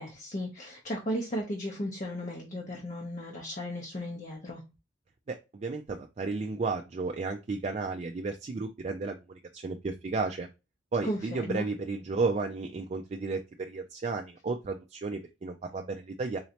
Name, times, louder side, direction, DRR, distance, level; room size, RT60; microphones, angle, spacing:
voice 1, 0.0-4.6 11.1-11.7, equal, 40° left, -1 dB, 0.8 m, -35 dB
voice 2, 5.3-10.5 10.9-16.4, right 3 dB, 35° right, 4 dB, 0.4 m, -33 dB
3.9 x 3.1 x 2.7 m, 0.27 s
head